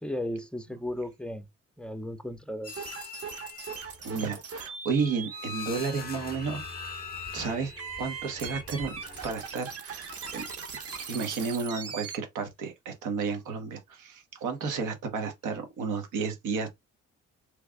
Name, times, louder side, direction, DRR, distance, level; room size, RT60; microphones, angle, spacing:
voice 1, 0.0-1.5 1.8-2.9, left 1 dB, 5° left, 0.5 m, -35 dB
sound 1, 2.6-4.0 5.0-9.4, left 6 dB, 30° left, 0.8 m, -42 dB
sound 2, 2.7-12.2, right 6 dB, 50° right, 1.0 m, -41 dB
voice 2, 4.0-6.6 7.3-7.7 8.0-8.9 9.2-10.4 11.1-16.7, right 5 dB, 85° right, 1.2 m, -32 dB
3.2 x 2.5 x 3.4 m
cardioid pair, 90°, 30 cm